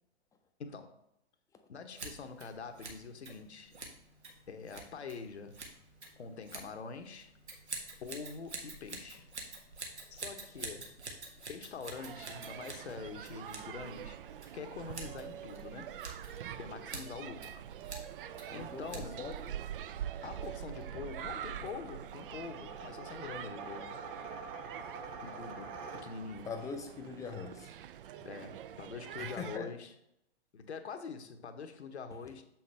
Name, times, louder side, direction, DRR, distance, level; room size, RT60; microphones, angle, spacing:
voice 1, 0.6-1.0 1.7-3.7 4.5-5.6 6.2-7.3 8.0-9.3 10.1-10.9 11.5-16.0 16.6-17.6 18.5-19.2 20.2-24.0 25.2-26.5 28.2-29.9 30.5-32.4, left 5 dB, 75° left, 7 dB, 1.0 m, -45 dB
Scissors, 1.9-19.4, right 3 dB, 80° right, 1.6 m, -48 dB
sound 1, 11.9-29.6, right 10 dB, 55° right, 0.5 m, -45 dB
sound 2, 18.3-26.5, right 4 dB, 35° right, 1.1 m, -48 dB
voice 2, 18.5-19.6 26.5-27.7 29.2-29.7, left 5 dB, 10° left, 5 dB, 0.6 m, -42 dB
7.1 x 5.8 x 3.3 m, 0.79 s
figure-of-eight pair, 115°, 34 cm